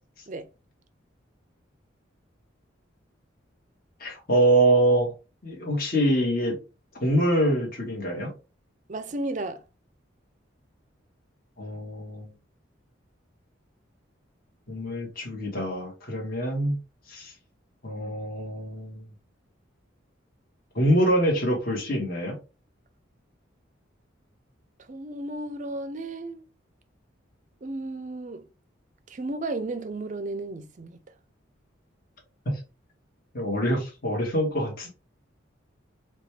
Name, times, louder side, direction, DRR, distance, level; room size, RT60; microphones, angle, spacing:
voice 1, 4.0-5.1 5.4-6.6 7.0-8.3 11.6-12.3 14.7-16.8 17.1-17.3 17.8-19.0 20.7-22.4 33.3-34.9, right 1 dB, 50° left, 1.3 m, -25 dB
voice 2, 8.9-9.6 24.8-26.4 27.6-28.4 29.1-31.0, right 2 dB, 40° right, 0.5 m, -33 dB
4.9 x 2.3 x 3.2 m
head